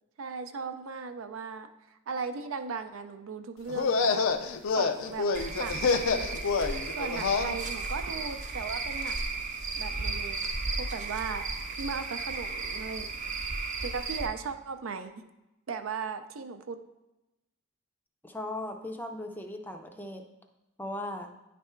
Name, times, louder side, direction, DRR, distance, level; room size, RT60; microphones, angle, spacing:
voice 1, 0.2-1.7 2.1-4.1 4.7-5.3 5.6-9.2 9.7-10.5 10.8-11.4 11.8-13.1 13.8-15.1 15.7-16.8, right 5 dB, 80° right, 9 dB, 0.5 m, -37 dB
sound 1, 3.7-7.5, left 4 dB, 80° left, 0.5 m, -27 dB
Cricket / Frog, 5.3-14.3, right 3 dB, 40° right, 0.7 m, -34 dB
voice 2, 18.2-20.2 20.8-21.3, left 1 dB, 10° left, 5 dB, 0.4 m, -37 dB
9.4 x 3.4 x 4.4 m, 0.97 s
head